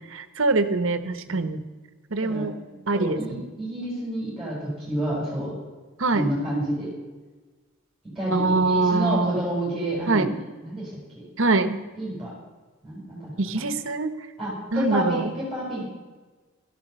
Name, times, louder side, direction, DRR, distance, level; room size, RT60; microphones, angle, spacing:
voice 1, 0.1-1.6 2.1-2.5 2.9-3.4 6.0-6.3 8.3-9.4 10.1-10.3 11.4-11.8 13.4-14.1 14.7-15.2, right 3 dB, 60° right, 11 dB, 1.1 m, -23 dB
voice 2, 2.9-5.5 6.1-6.9 8.2-10.9 11.1-11.2 12.0-12.3 12.8-13.3 13.5-13.7 14.4-15.8, right 1 dB, ahead, -7 dB, 6.3 m, -29 dB
13.0 x 12.0 x 6.9 m, 1.3 s
head